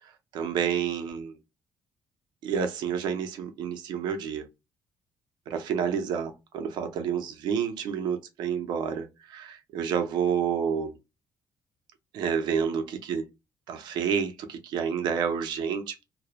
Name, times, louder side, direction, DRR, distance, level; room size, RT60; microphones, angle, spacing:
voice 1, 0.0-1.4 2.4-4.5 5.5-11.0 12.1-13.2 13.7-16.0, right 7 dB, 80° right, 0.5 m, -29 dB
2.1 x 2.0 x 2.8 m
cardioid pair, 105°, 7 cm